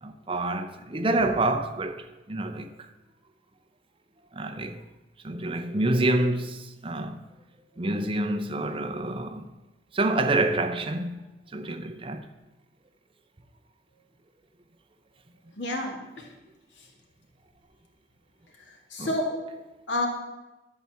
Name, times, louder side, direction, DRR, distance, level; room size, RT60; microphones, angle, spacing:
voice 1, 0.0-2.9 4.3-4.8 5.2-7.2 7.8-9.4 9.9-11.2 11.5-12.2 19.0-19.1, right 2 dB, 30° right, 0.7 m, -27 dB
voice 2, 15.6-16.3 18.9-19.5 19.9-20.1, left 1 dB, 90° left, 2.1 m, -29 dB
12.0 x 4.3 x 7.4 m
head